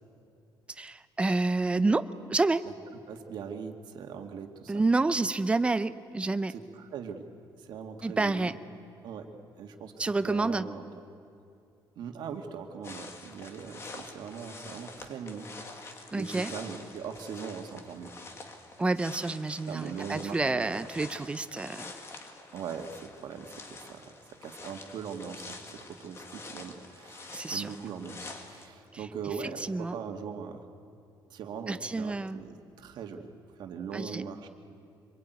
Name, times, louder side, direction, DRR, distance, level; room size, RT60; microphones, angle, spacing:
voice 1, 0.8-2.6 4.7-6.5 8.0-8.5 10.0-10.7 16.1-16.5 18.8-21.8 27.3-27.7 29.6-30.0 31.7-32.4 33.9-34.2, right 3 dB, 15° right, 13 dB, 0.6 m, -28 dB
voice 2, 3.1-4.9 6.5-7.2 7.6-8.5 9.0-9.3 9.6-10.8 12.0-18.1 19.7-20.8 22.5-24.1 24.4-30.7 31.3-33.3 33.6-34.5, right 6 dB, 65° right, 4 dB, 2.0 m, -40 dB
sound 1, 12.8-28.7, left 3 dB, 35° left, 2.1 m, -47 dB
25.5 x 22.5 x 9.4 m, 2.5 s
cardioid pair, 165°, 8 cm